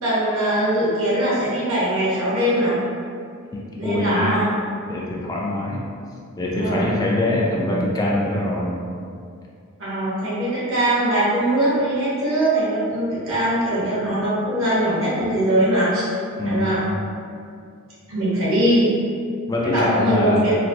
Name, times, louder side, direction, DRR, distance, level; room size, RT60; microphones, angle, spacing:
voice 1, 0.0-2.8 3.7-4.5 6.6-7.0 9.8-16.0 16.4-16.8 18.1-18.9 19.6-20.5, right 1 dB, 65° right, -8 dB, 1.1 m, -21 dB
voice 2, 3.5-4.3 4.9-5.9 6.4-8.8 16.4-16.8 19.5-20.5, left 1 dB, 15° left, -4 dB, 0.3 m, -23 dB
3.1 x 2.5 x 2.6 m, 2.3 s
head